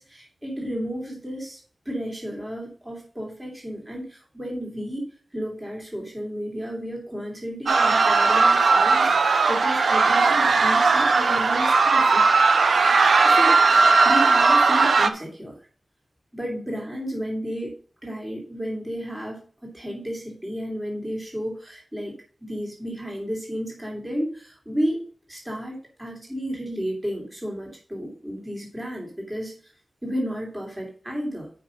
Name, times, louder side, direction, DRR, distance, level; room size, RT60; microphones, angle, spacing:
voice 1, 0.0-12.3 13.1-15.6 16.3-17.7 18.0-29.6 30.0-31.5, equal, 15° right, -1 dB, 2.9 m, -32 dB
sound 1, 7.7-15.1, right 4 dB, 80° right, 0.7 m, -18 dB
8.6 x 5.2 x 5.2 m, 0.43 s
wide cardioid pair, 90°, 0 cm